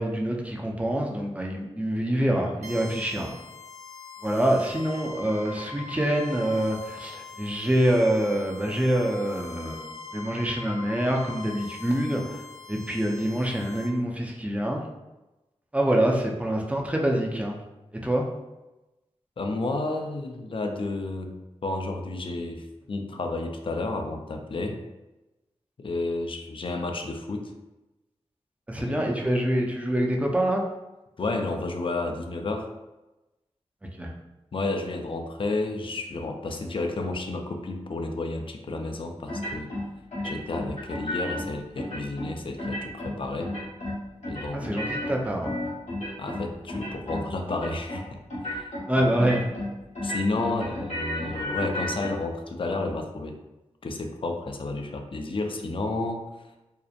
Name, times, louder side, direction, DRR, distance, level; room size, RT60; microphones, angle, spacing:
voice 1, 0.0-3.3 4.2-9.9 10.1-12.4 12.7-14.8 15.7-17.6 18.0-18.3 28.7-30.7 34.0-34.1 44.5-45.5 48.9-49.5 50.5-50.6, right 1 dB, 10° right, 0 dB, 0.5 m, -26 dB
sound 1, 2.6-13.9, left 4 dB, 90° right, 0.5 m, -42 dB
voice 2, 19.4-21.3 21.6-24.8 25.8-27.5 28.9-29.3 31.2-32.7 34.5-39.7 40.2-43.5 44.3-44.7 46.2-48.2 48.5-48.7 49.0-49.4 50.0-53.4 53.8-56.3, left 2 dB, 50° left, 5 dB, 0.3 m, -31 dB
sound 2, 39.3-39.8 40.1-41.4 41.8-42.3 42.6-43.1 43.4-44.0 44.2-46.4 46.7-47.2 47.5-48.0 48.3-48.8 49.1-49.7 49.9-52.1, left 1 dB, 80° left, 1.0 m, -32 dB
2.7 x 2.1 x 2.4 m, 1.0 s
cardioid pair, 45°, 12 cm